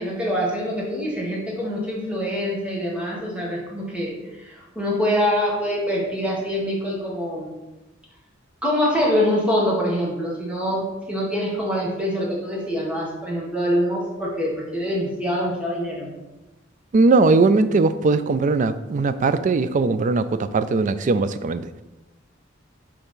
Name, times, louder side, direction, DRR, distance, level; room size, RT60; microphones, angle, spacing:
voice 1, 0.0-7.5 8.6-16.2, equal, 5° right, -4 dB, 1.6 m, -25 dB
voice 2, 16.9-21.7, right 3 dB, 40° right, 12 dB, 0.3 m, -19 dB
5.6 x 3.5 x 5.6 m, 1.1 s
head